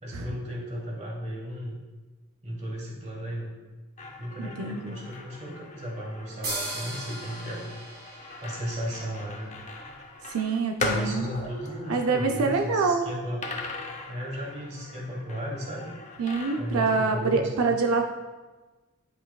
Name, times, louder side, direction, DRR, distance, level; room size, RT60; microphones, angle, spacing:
voice 1, 0.0-1.8 2.4-3.5 4.2-7.7 8.4-9.5 10.8-13.5 14.1-15.9 16.6-17.7, equal, 30° right, -2 dB, 1.4 m, -35 dB
sound 1, 4.0-12.7 13.4-16.9, left 2 dB, 30° left, 0.6 m, -39 dB
voice 2, 4.4-5.0 10.2-11.5 11.9-13.1 16.2-18.1, right 4 dB, 80° right, 3 dB, 0.5 m, -26 dB
sound 2, 6.4-10.0, right 2 dB, 45° right, 1.8 m, -38 dB
10.0 x 5.5 x 2.3 m, 1.2 s
head